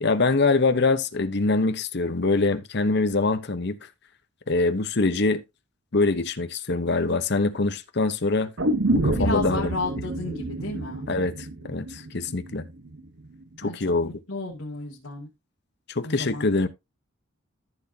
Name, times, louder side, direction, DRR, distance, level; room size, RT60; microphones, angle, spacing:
voice 1, 0.0-3.8 4.5-5.4 5.9-8.5 8.9-9.7 11.1-11.3 11.6-12.6 13.6-14.1 15.9-16.7, left 3 dB, 55° left, 0.9 m, -24 dB
sound 1, 8.6-12.6 12.9-13.0, right 2 dB, 70° right, 1.0 m, -27 dB
voice 2, 9.1-11.0 13.6-13.7 14.0-15.3 16.0-16.5, left 2 dB, 80° left, 2.5 m, -32 dB
14.0 x 6.0 x 2.8 m
head